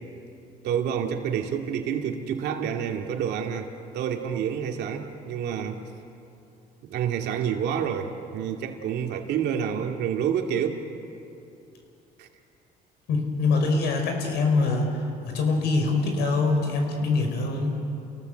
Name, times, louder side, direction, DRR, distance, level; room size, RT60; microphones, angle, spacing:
voice 1, 0.6-5.8 6.9-10.8 12.2-12.3, right 8 dB, 80° right, 3 dB, 2.4 m, -28 dB
voice 2, 13.1-14.9 15.3-17.8, left 3 dB, 80° left, 3 dB, 5.4 m, -24 dB
30.0 x 18.0 x 8.0 m, 2.7 s
cardioid pair, 110°, 17 cm